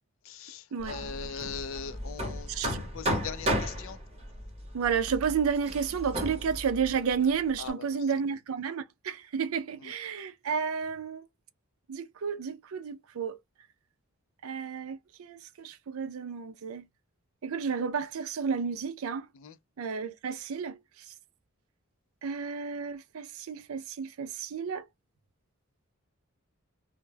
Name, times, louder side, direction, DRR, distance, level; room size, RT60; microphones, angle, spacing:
voice 1, 0.2-4.0 7.6-7.9 9.8-9.9 19.4-19.6, left 6 dB, 60° left, 0.4 m, -40 dB
Hammer, 0.8-7.7, equal, 30° right, 0.9 m, -35 dB
voice 2, 2.5-2.8 4.7-11.2 11.9-13.4 14.4-16.9 17.4-19.3 19.8-20.8 21.1-21.2 22.2-24.9, right 6 dB, 75° right, 0.4 m, -31 dB
2.2 x 2.1 x 3.2 m
head